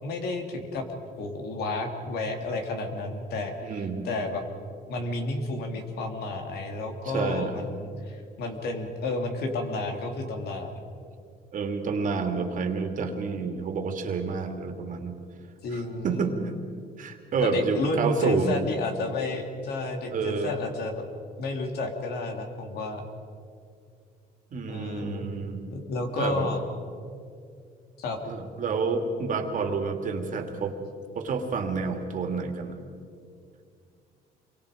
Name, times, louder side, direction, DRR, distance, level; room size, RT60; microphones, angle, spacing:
voice 1, 0.0-0.9 1.2-3.8 4.0-4.4 4.9-10.7 15.6-16.3 17.4-21.0 21.4-23.0 24.7-25.2 25.7-26.6 28.0-28.2, left 2 dB, 70° left, 3 dB, 3.3 m, -31 dB
voice 2, 3.6-4.1 7.1-7.6 11.5-15.2 15.7-16.4 17.0-18.6 20.1-20.6 24.5-25.7 26.2-26.5 28.3-30.7 31.1-32.8, right 4 dB, 50° right, 5 dB, 2.7 m, -29 dB
28.0 x 23.5 x 5.2 m, 2.3 s
cardioid pair, 110°, 17 cm